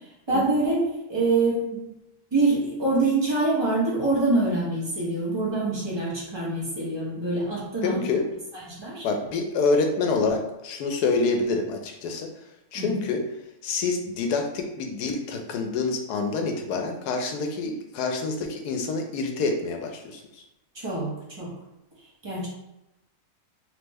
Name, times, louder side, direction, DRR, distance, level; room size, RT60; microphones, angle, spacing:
voice 1, 0.3-1.9 2.3-8.0 8.7-9.0 12.7-13.0 20.7-21.1 21.4-21.5 22.2-22.5, right 2 dB, 25° right, -5 dB, 0.5 m, -25 dB
voice 2, 7.8-8.3 9.0-12.3 12.7-13.2 13.6-20.4, left 4 dB, 85° left, 3 dB, 1.1 m, -27 dB
3.1 x 2.1 x 3.4 m, 0.91 s
omnidirectional pair, 1.6 m